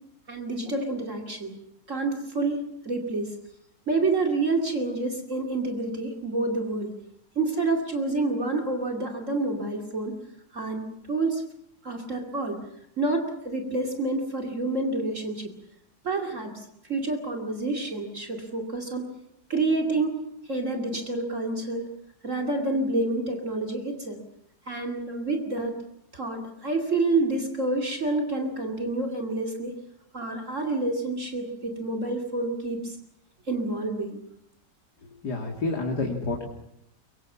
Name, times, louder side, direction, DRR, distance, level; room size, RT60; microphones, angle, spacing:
voice 1, 0.3-1.6 1.9-3.3 3.9-6.9 7.4-10.1 10.5-11.4 11.8-12.6 13.0-15.5 16.0-16.5 16.9-19.1 19.5-20.2 20.5-21.9 22.2-24.2 24.7-25.8 26.1-29.7 30.1-33.0 33.5-34.2, right 2 dB, 45° right, 2 dB, 2.8 m, -28 dB
voice 2, 35.2-36.5, left 3 dB, 70° left, 1 dB, 3.0 m, -28 dB
23.5 x 23.0 x 7.3 m, 0.77 s
omnidirectional pair, 1.8 m